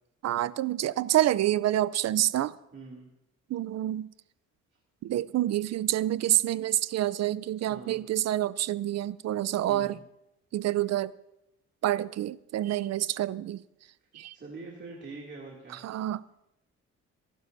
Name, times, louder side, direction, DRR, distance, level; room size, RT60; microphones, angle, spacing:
voice 1, 0.2-2.5 3.5-4.1 5.0-10.0 10.5-11.1 11.8-13.6 14.1-14.3 15.8-16.2, right 13 dB, 60° right, 0.5 m, -27 dB
voice 2, 2.7-3.1 7.7-8.0 9.5-10.0 14.3-15.8, right 3 dB, 35° right, 2.7 m, -44 dB
28.0 x 12.0 x 2.7 m
cardioid pair, 90°, 30 cm